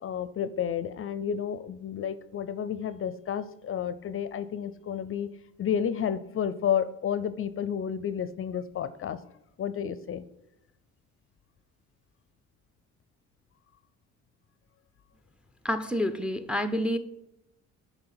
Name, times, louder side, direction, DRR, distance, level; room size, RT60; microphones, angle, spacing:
voice 1, 0.0-5.3 5.6-9.2 9.6-10.2, left 8 dB, 45° left, 0.5 m, -31 dB
voice 2, 15.6-17.0, left 1 dB, 5° right, 0.5 m, -28 dB
6.8 x 4.1 x 5.7 m
cardioid pair, 90°, 30 cm